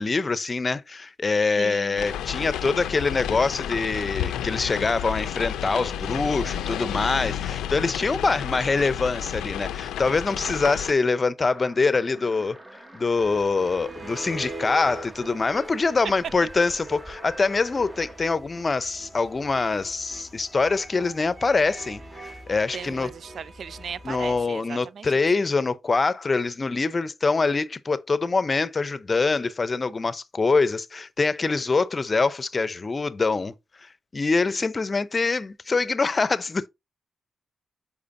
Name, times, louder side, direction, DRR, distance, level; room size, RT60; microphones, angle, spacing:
voice 1, 0.0-12.6 12.9-23.1 24.0-33.5 33.8-36.7, left 4 dB, 35° left, 0.7 m, -24 dB
voice 2, 1.6-2.0 22.7-25.2, right 7 dB, 65° right, 0.3 m, -38 dB
sound 1, 2.0-10.9, left 10 dB, 85° left, 0.5 m, -31 dB
sound 2, 11.5-18.2, right 1 dB, 20° right, 1.1 m, -47 dB
sound 3, 13.2-24.4, right 1 dB, 40° right, 3.4 m, -42 dB
8.4 x 4.9 x 2.7 m
supercardioid pair, 55°, 0 cm